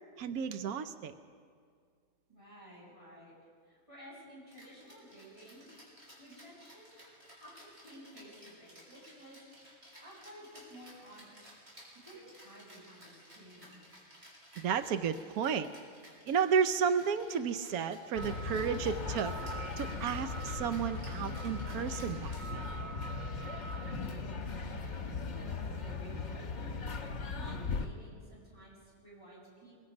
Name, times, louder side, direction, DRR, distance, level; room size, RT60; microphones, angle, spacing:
voice 1, 0.2-1.1 14.6-15.7 16.3-19.3 19.8-22.6, right 7 dB, 90° right, 10 dB, 1.2 m, -32 dB
voice 2, 2.3-3.3 3.6-5.7 6.2-7.0 7.4-9.5 10.0-11.4 12.0-13.8 23.7-24.9 25.3-27.0 27.4-29.8, equal, 20° right, -6 dB, 7.8 m, -54 dB
Rattle (instrument), 4.5-23.0, equal, 50° right, 6.5 m, -56 dB
sound 1, 18.2-27.9, left 3 dB, 55° left, 1.6 m, -38 dB
23.0 x 23.0 x 5.3 m, 2.1 s
omnidirectional pair, 1.5 m